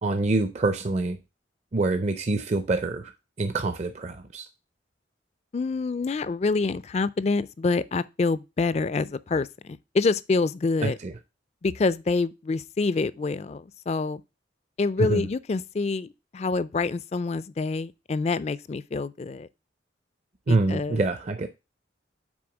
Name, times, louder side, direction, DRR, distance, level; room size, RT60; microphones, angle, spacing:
voice 1, 0.0-1.2 1.7-3.1 3.4-4.5 10.8-11.1 15.1-15.2 20.5-21.5, right 3 dB, 35° right, 0.5 m, -26 dB
voice 2, 5.5-11.0 11.6-14.2 14.8-19.5 20.5-21.0, left 3 dB, 35° left, 0.3 m, -27 dB
6.2 x 4.3 x 5.9 m
head